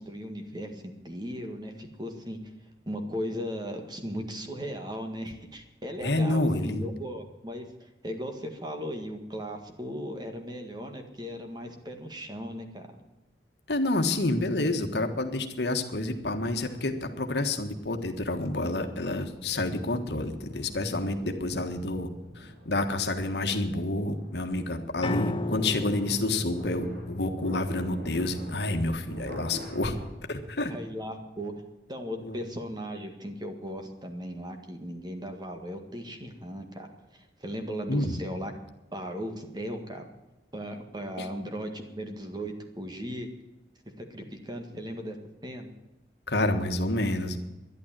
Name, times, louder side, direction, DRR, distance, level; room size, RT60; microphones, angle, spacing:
voice 1, 0.0-2.4 2.8-12.9 30.7-31.5 31.9-36.9 37.4-38.5 38.9-40.0 40.5-43.3 44.0-45.2 45.4-45.7, equal, 25° right, 4 dB, 1.8 m, -37 dB
voice 2, 6.0-6.8 13.7-22.1 22.3-30.0 30.3-30.7 32.2-32.4 37.9-38.2 41.2-41.3 46.3-47.4, left 2 dB, 70° left, 6 dB, 1.5 m, -29 dB
sound 1, 16.0-17.4 18.0-30.0, equal, 80° right, 4.7 m, -47 dB
Piano, 25.0-31.2, left 2 dB, 30° left, 0.7 m, -37 dB
12.0 x 11.0 x 7.5 m, 1.1 s
head